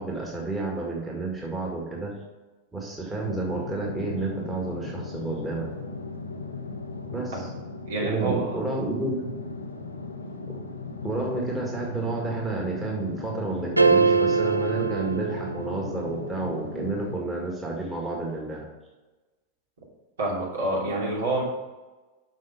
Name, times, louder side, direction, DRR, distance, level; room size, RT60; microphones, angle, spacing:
voice 1, 0.0-2.2 2.7-5.7 7.1-7.5 8.0-9.3 10.5-10.6 11.0-18.7, right 3 dB, 10° right, -3 dB, 1.9 m, -30 dB
sound 1, 3.2-17.2, left 3 dB, 75° left, 0.8 m, -37 dB
voice 2, 7.9-8.6 20.2-21.4, right 2 dB, 65° right, -5 dB, 2.9 m, -28 dB
sound 2, 13.8-16.0, right 4 dB, 85° right, 0.4 m, -22 dB
6.4 x 6.2 x 5.8 m, 1.2 s
figure-of-eight pair, 90°, 0 cm